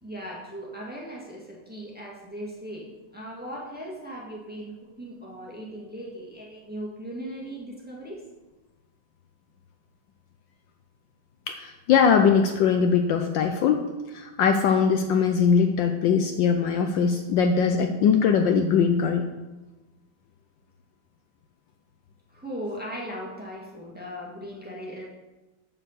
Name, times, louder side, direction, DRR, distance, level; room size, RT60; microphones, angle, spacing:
voice 1, 0.0-8.2 22.3-25.0, equal, 5° right, -3 dB, 1.5 m, -38 dB
voice 2, 11.5-13.8 14.1-19.3, left 6 dB, 70° left, 6 dB, 1.2 m, -21 dB
7.5 x 6.5 x 6.7 m, 1.1 s
omnidirectional pair, 2.3 m